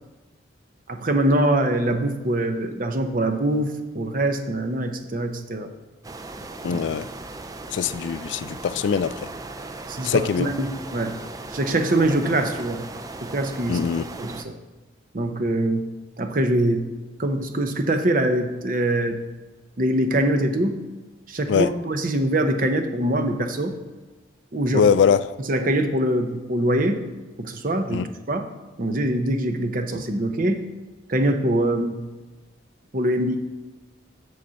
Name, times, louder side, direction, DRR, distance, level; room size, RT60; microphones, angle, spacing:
voice 1, 0.9-5.7 6.7-6.8 9.9-11.2 11.5-12.8 13.2-13.8 14.2-14.5 15.1-15.9 16.2-16.9 17.2-19.2 19.8-20.8 21.3-23.8 24.5-24.9 25.4-27.0 27.4-28.5 28.8-30.6 31.1-32.0 32.9-33.4, right 1 dB, 45° right, 6 dB, 0.7 m, -23 dB
sound 1, 6.0-14.4, right 2 dB, 20° right, 0.4 m, -37 dB
voice 2, 6.6-7.1 7.7-9.1 10.0-10.5 13.7-14.0 21.5-21.7 24.7-25.2 27.9-28.0, left 7 dB, 70° left, 15 dB, 0.3 m, -21 dB
7.8 x 4.2 x 6.8 m, 1.2 s
head